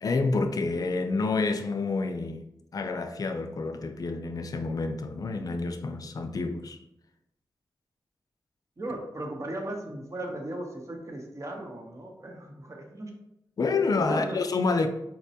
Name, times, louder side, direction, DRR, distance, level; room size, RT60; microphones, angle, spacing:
voice 1, 0.0-2.4 2.7-6.8 13.6-14.9, left 3 dB, 50° left, 0.4 m, -28 dB
voice 2, 8.8-13.1 14.0-14.4, right 1 dB, 40° right, 0.8 m, -37 dB
4.0 x 2.2 x 2.7 m
cardioid pair, 60°, 8 cm